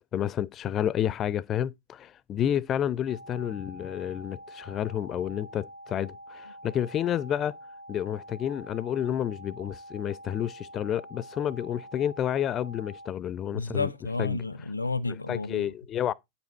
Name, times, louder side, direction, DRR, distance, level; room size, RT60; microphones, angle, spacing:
voice 1, 0.1-7.5 7.9-13.9 14.2-14.4 15.3-16.1, left 10 dB, 30° left, 0.4 m, -30 dB
sound 1, 3.1-13.1, right 1 dB, 75° right, 1.2 m, -46 dB
voice 2, 13.5-15.7, left 3 dB, 80° left, 0.8 m, -31 dB
9.1 x 7.2 x 4.2 m
figure-of-eight pair, 90°, 0 cm